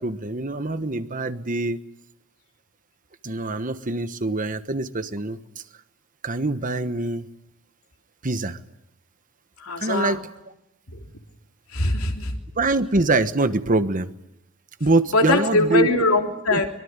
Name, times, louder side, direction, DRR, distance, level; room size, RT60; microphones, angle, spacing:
voice 1, 0.0-1.8 3.2-5.4 6.2-7.3 8.2-8.6 9.8-10.3 12.6-14.1 14.8-16.0 16.5-16.6, right 2 dB, 40° right, 11 dB, 1.3 m, -24 dB
voice 2, 9.6-10.2 10.9-11.0 11.7-12.3 15.1-16.7, left 2 dB, 80° left, 3 dB, 3.4 m, -22 dB
24.5 x 23.0 x 9.7 m, 0.85 s
head